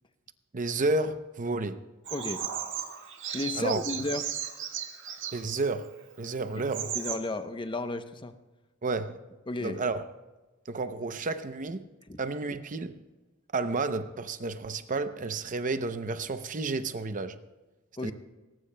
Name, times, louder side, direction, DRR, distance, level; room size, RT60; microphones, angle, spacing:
voice 1, 0.5-1.8 3.5-3.8 5.3-5.9 6.2-7.0 8.8-9.2 9.6-10.0 10.7-11.9 12.2-13.0 13.5-17.4 18.0-18.1, right 3 dB, 40° right, 0.6 m, -31 dB
voice 2, 2.1-2.4 3.3-4.3 6.5-6.6 6.9-8.3 9.5-9.8 12.1-12.2 18.0-18.1, left 2 dB, 25° left, 0.7 m, -33 dB
Bird vocalization bird call bird song, 2.1-5.6 6.3-6.4 6.6-7.2, right 9 dB, 60° right, 1.7 m, -36 dB
21.0 x 19.0 x 2.2 m
head